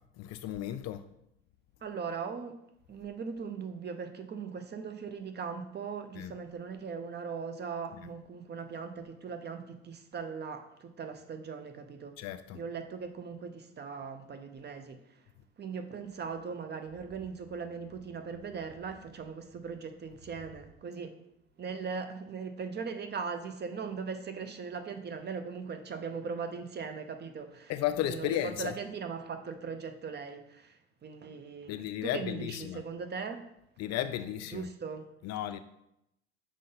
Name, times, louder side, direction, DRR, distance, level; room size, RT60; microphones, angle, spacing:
voice 1, 0.2-1.1 6.2-6.4 8.0-8.1 12.2-12.6 27.7-28.8 31.7-32.8 33.8-34.7 35.2-35.6, left 12 dB, 50° left, 0.4 m, -34 dB
voice 2, 1.8-2.6 2.9-12.2 12.5-15.3 15.6-21.2 21.6-27.7 28.0-33.4 34.1-35.1, right 5 dB, 30° right, 0.7 m, -39 dB
sound 1, 16.1-20.6, left 1 dB, 85° right, 2.0 m, -60 dB
6.3 x 3.8 x 3.9 m
hypercardioid pair, 75°, 34 cm